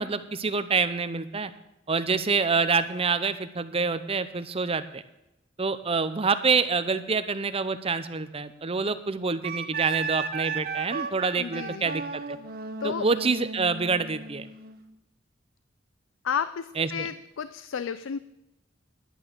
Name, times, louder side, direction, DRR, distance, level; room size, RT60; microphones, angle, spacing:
voice 1, 0.0-1.5 1.9-5.0 5.6-12.4 12.8-14.5 16.8-17.1, right 4 dB, 30° right, 12 dB, 0.7 m, -27 dB
Wind instrument woodwind instrument, 9.4-14.8, right 5 dB, 50° right, 1.0 m, -34 dB
voice 2, 11.4-11.9 12.8-13.1 16.2-18.2, left 7 dB, 75° left, 14 dB, 0.4 m, -32 dB
11.0 x 8.7 x 6.6 m, 0.91 s
head